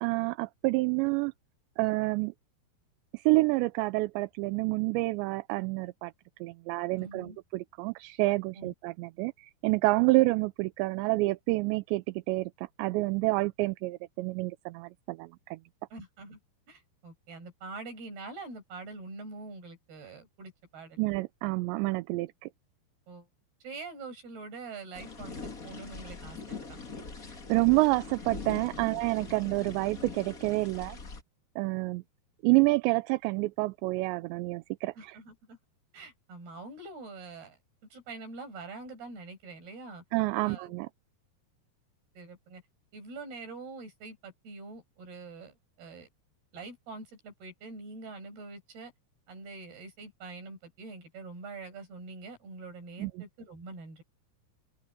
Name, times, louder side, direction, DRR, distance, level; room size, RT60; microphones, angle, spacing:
voice 1, 0.0-1.3 1.8-2.3 3.1-6.1 6.4-15.6 21.0-22.5 27.5-31.0 31.6-32.0 32.4-35.2 40.1-40.9 53.0-53.1, right 23 dB, 85° right, 2.9 m, -28 dB
voice 2, 7.0-7.4 8.6-8.7 15.9-16.4 16.7-21.0 23.1-23.3 23.6-26.8 35.0-35.6 35.9-37.6 37.9-40.0 40.4-40.7 42.2-42.6 42.9-46.1 46.5-48.9 49.3-54.0, right 3 dB, 60° right, 8.7 m, -45 dB
sound 1, 24.9-31.2, left 4 dB, 35° left, 1.4 m, -42 dB
open air
omnidirectional pair, 5.1 m